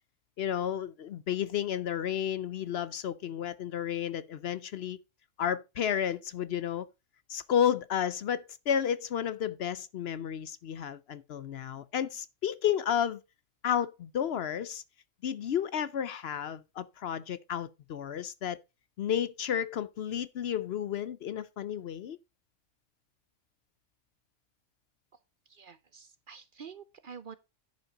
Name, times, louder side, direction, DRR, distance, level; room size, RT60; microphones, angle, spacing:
voice 1, 0.4-5.0 5.4-6.9 7.3-13.2 13.6-14.8 15.2-18.6 19.0-22.2, left 9 dB, 60° left, 0.8 m, -32 dB
voice 2, 25.5-27.4, right 6 dB, 50° right, 0.7 m, -48 dB
10.5 x 5.4 x 4.9 m
omnidirectional pair, 1.3 m